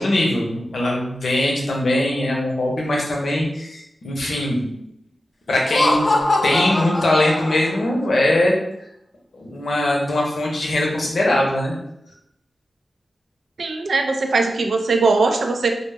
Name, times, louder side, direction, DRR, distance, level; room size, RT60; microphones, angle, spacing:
voice 1, 0.0-4.7 5.5-6.1 6.4-8.5 9.3-11.7, left 1 dB, 75° left, -1 dB, 0.6 m, -21 dB
Laughter, 5.6-7.9, left 2 dB, 40° left, 0.4 m, -22 dB
voice 2, 13.6-15.7, right 3 dB, 80° right, 4 dB, 0.3 m, -20 dB
2.1 x 2.0 x 3.3 m, 0.78 s
cardioid pair, 50°, 0 cm